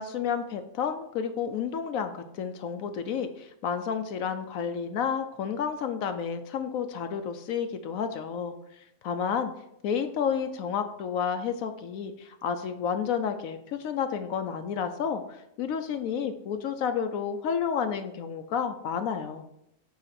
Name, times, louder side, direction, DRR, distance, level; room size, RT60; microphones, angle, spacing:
voice 1, 0.0-9.5 9.8-19.4, left 7 dB, 70° left, 8 dB, 0.9 m, -31 dB
8.4 x 2.9 x 5.8 m, 0.79 s
omnidirectional pair, 1.6 m